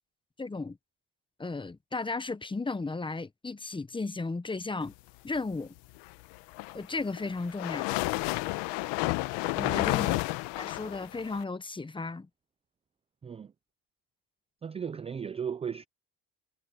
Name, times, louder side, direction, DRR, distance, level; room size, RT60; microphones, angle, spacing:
voice 1, 0.4-0.8 1.4-4.9 5.2-5.7 6.7-8.0 9.5-10.2 10.6-12.3, left 3 dB, 10° left, 0.9 m, -35 dB
sound 1, 6.3-11.4, left 21 dB, 80° left, 1.0 m, -31 dB
voice 2, 9.6-10.0 13.2-13.5 14.6-15.9, right 7 dB, 15° right, 0.3 m, -36 dB
cardioid pair, 115°, 41 cm